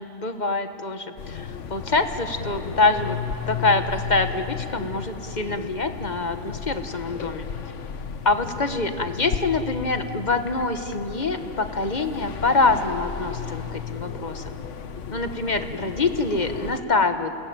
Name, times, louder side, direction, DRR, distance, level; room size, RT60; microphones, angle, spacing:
voice 1, 0.0-3.2 3.5-7.5 8.2-14.6 15.1-17.4, left 3 dB, 35° left, 8 dB, 1.3 m, -25 dB
sound 1, 1.2-16.8, left 6 dB, 70° left, 1.3 m, -34 dB
28.5 x 20.0 x 8.9 m, 2.6 s
omnidirectional pair, 1.3 m